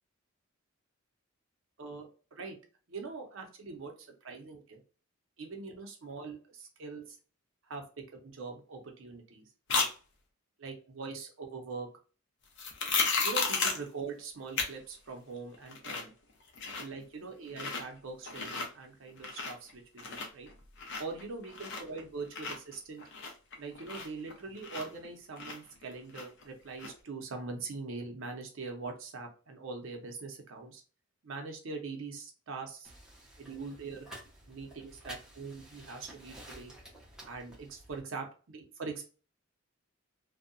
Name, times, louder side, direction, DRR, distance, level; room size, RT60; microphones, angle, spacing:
voice 1, 1.8-2.6 2.9-4.8 5.4-7.2 7.6-9.9 10.6-11.9 13.2-16.1 16.8-20.5 21.0-23.0 23.6-30.8 31.2-32.9 33.4-34.1 34.5-36.7 37.2-39.0, right 4 dB, 65° right, 3 dB, 0.6 m, -42 dB
sound 1, 9.7-9.9 12.6-13.9 14.6-14.7 15.1-15.2 15.5-16.1 16.4-17.0 17.5-17.8 18.2-18.7 19.1-19.7 20.0-22.0 22.3-25.1 25.4-26.4 26.8-26.9, left 4 dB, 60° left, 0.6 m, -33 dB
sound 2, 32.8-38.0, right 1 dB, 5° right, 0.7 m, -51 dB
2.7 x 2.1 x 2.5 m, 0.36 s
head